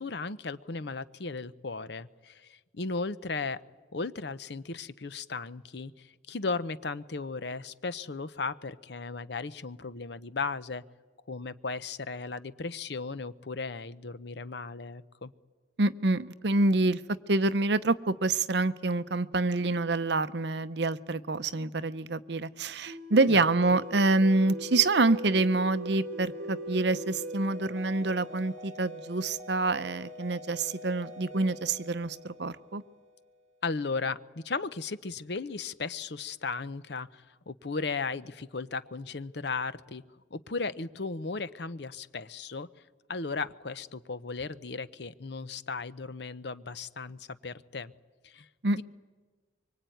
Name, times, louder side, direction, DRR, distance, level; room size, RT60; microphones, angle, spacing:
voice 1, 0.0-3.6 3.9-10.8 11.3-15.3 23.2-23.4 33.6-40.0 40.3-42.7 43.1-47.9 48.2-48.5 48.7-48.8, left 4 dB, 60° left, 15 dB, 0.8 m, -36 dB
voice 2, 15.8-17.0 17.3-32.8 48.6-48.8, right 2 dB, 60° right, 13 dB, 0.8 m, -27 dB
sound 1, 22.9-33.2, equal, 35° right, 3.5 m, -41 dB
24.5 x 24.0 x 9.3 m, 1.4 s
head